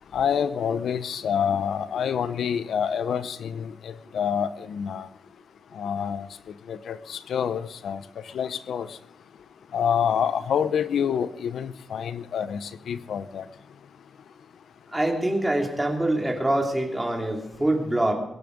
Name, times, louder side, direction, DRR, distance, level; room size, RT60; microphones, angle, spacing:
voice 1, 0.1-5.1 5.8-6.3 6.7-8.0 8.3-8.9 9.7-13.4, left 8 dB, 85° left, 14 dB, 0.7 m, -27 dB
voice 2, 14.9-18.1, right 1 dB, 10° right, 1 dB, 2.7 m, -24 dB
21.5 x 11.0 x 5.2 m, 0.85 s
wide cardioid pair, 160°, 0 cm